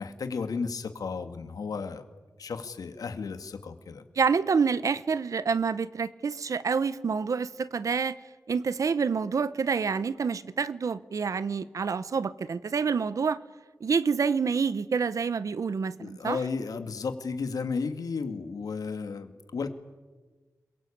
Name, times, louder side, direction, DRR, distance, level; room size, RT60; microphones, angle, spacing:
voice 1, 0.0-2.0 2.4-4.0 16.0-19.7, left 5 dB, 80° left, 2.2 m, -33 dB
voice 2, 4.2-8.2 8.5-13.4 13.8-16.4, right 5 dB, 65° right, 1.1 m, -27 dB
28.0 x 22.5 x 8.7 m
wide cardioid pair, 125°, 6 cm